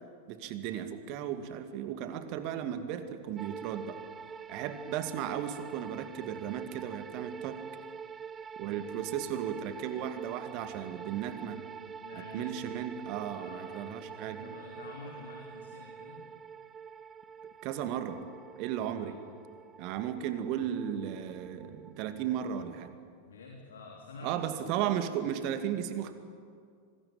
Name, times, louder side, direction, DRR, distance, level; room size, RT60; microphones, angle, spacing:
voice 1, 0.3-4.0 4.5-7.6 8.6-11.6 12.3-14.6 17.6-18.3 18.6-19.1 19.8-22.9 24.2-26.1, right 10 dB, 45° right, 8 dB, 2.2 m, -35 dB
sound 1, 3.4-22.9, right 6 dB, 20° right, 0.7 m, -46 dB
voice 2, 12.0-12.5 13.3-14.1 14.4-16.2 18.9-19.2 23.3-24.5, left 3 dB, 65° left, 0 dB, 3.5 m, -48 dB
26.0 x 20.5 x 8.9 m, 2.2 s
figure-of-eight pair, 90°, 0 cm